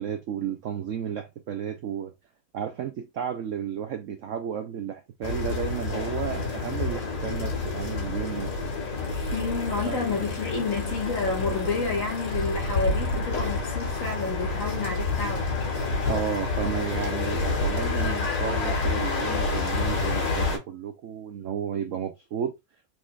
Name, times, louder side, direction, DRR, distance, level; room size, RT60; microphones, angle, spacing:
voice 1, 0.0-2.1 2.5-8.5 9.9-10.3 16.1-22.5, right 8 dB, 85° right, 0.6 m, -33 dB
sound 1, 5.2-20.6, left 3 dB, 70° left, 2.5 m, -28 dB
voice 2, 9.3-15.5, left 4 dB, 45° left, 1.6 m, -29 dB
4.6 x 4.0 x 2.2 m
omnidirectional pair, 2.0 m